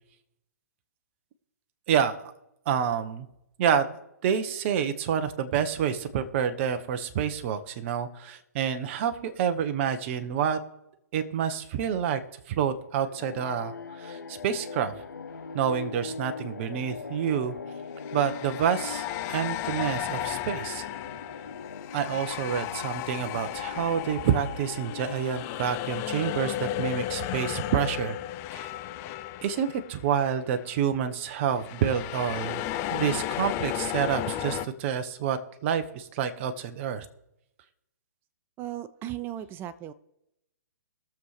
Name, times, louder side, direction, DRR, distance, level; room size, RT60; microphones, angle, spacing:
voice 1, 1.9-2.3 2.7-3.3 3.6-10.6 11.1-12.2 12.5-14.9 15.5-17.6 18.1-20.9 21.9-28.2 28.5-28.7 29.4-32.6 32.9-37.0, right 8 dB, 45° right, 9 dB, 1.1 m, -28 dB
sound 1, 13.0-29.6, left 5 dB, 85° left, 0.7 m, -42 dB
sound 2, 15.3-15.5 18.0-30.3 30.6-30.8 31.5-34.7, left 13 dB, 30° left, 0.5 m, -34 dB
voice 2, 38.6-39.9, right 12 dB, 25° right, 15 dB, 0.5 m, -36 dB
21.5 x 7.3 x 3.3 m, 0.86 s
hypercardioid pair, 125°, 9 cm